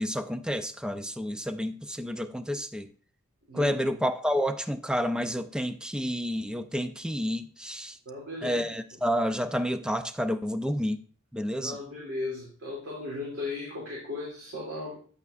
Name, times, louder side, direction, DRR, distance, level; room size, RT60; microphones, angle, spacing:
voice 1, 0.0-2.9 3.5-8.0 8.4-11.0 11.3-11.8, equal, 5° right, 0.4 m, -30 dB
voice 2, 8.1-8.6 11.5-15.0, left 2 dB, 65° right, 2.6 m, -36 dB
9.1 x 8.2 x 2.4 m
head